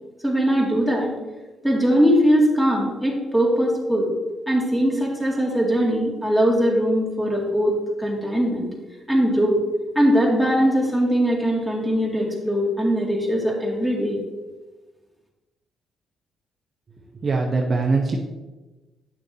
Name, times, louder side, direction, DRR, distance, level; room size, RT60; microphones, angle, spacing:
voice 1, 0.2-1.1 1.6-4.1 4.5-8.7 9.1-9.6 9.9-14.2, equal, 5° left, -2 dB, 2.2 m, -20 dB
voice 2, 17.2-18.2, right 3 dB, 40° right, 1 dB, 0.7 m, -21 dB
8.9 x 6.5 x 2.8 m, 1.2 s
cardioid pair, 90°, 0 cm